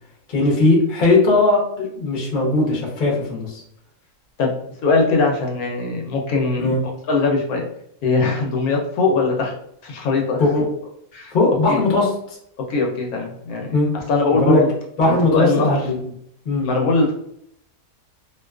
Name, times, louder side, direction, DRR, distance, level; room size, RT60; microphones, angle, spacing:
voice 1, 0.3-3.6 6.6-6.8 10.4-10.7 11.3-12.4 13.7-13.9 14.3-14.6 15.0-16.1 16.4-16.7, left 2 dB, 45° left, -3 dB, 0.7 m, -18 dB
voice 2, 4.8-6.7 7.1-7.6 8.0-9.5 9.8-10.4 11.1-11.3 11.7-11.8 12.7-13.7 14.1-14.7 15.3-15.8 16.6-17.1, left 3 dB, 80° left, 0 dB, 1.1 m, -20 dB
2.5 x 2.3 x 2.2 m, 0.73 s
omnidirectional pair, 1.6 m